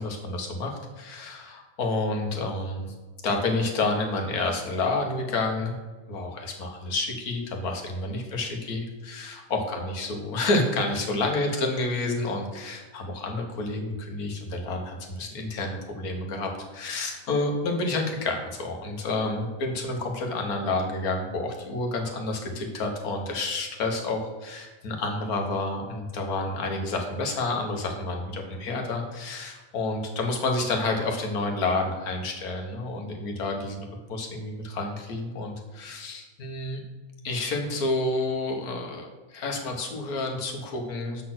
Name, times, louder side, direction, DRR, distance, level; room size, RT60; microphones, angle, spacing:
voice 1, 0.0-2.9 3.2-5.8 6.1-36.8 37.2-41.2, left 2 dB, 90° left, 2 dB, 1.7 m, -29 dB
7.4 x 4.3 x 5.9 m, 1.3 s
omnidirectional pair, 1.5 m